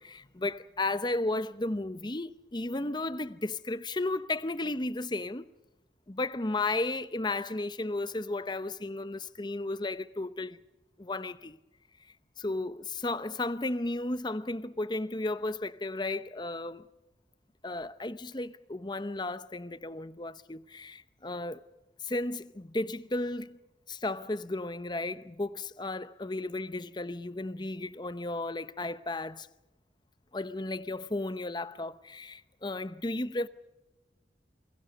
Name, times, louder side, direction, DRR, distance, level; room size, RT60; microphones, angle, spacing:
voice 1, 0.0-5.5 6.1-10.6 11.0-11.6 12.4-16.8 17.6-21.6 22.0-23.6 23.9-29.5 30.3-33.5, left 2 dB, 25° left, 0.8 m, -34 dB
28.5 x 22.5 x 5.3 m
head